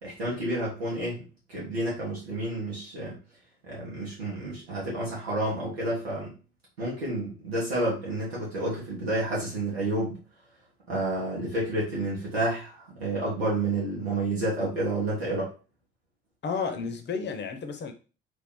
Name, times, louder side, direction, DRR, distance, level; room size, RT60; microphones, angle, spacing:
voice 1, 0.0-3.2 3.6-6.3 6.8-10.2 10.9-15.5, right 1 dB, 85° right, 1.0 m, -30 dB
voice 2, 16.4-17.9, left 5 dB, 35° left, 0.8 m, -32 dB
2.6 x 2.4 x 3.7 m
figure-of-eight pair, 50°, 30 cm